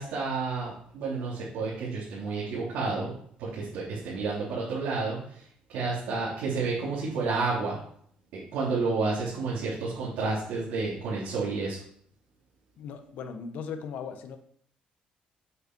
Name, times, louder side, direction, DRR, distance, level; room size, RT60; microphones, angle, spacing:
voice 1, 0.0-7.8 8.3-11.8, right 4 dB, 90° right, -7 dB, 3.3 m, -30 dB
voice 2, 12.8-14.4, left 6 dB, 70° left, 7 dB, 1.2 m, -38 dB
8.2 x 8.0 x 4.6 m, 0.64 s
cardioid pair, 150°, 3 cm